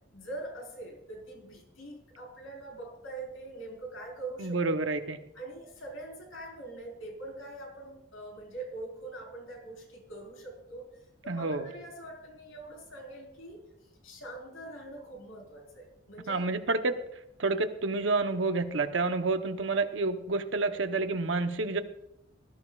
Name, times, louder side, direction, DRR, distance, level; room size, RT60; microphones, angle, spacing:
voice 1, 0.1-4.9 5.3-10.9 11.2-13.6 14.0-16.4, right 2 dB, 85° left, 0 dB, 4.2 m, -43 dB
voice 2, 4.4-5.2 11.3-11.7 16.3-16.9 17.4-21.8, right 3 dB, 70° right, 8 dB, 0.9 m, -29 dB
19.0 x 13.0 x 2.4 m, 0.82 s
head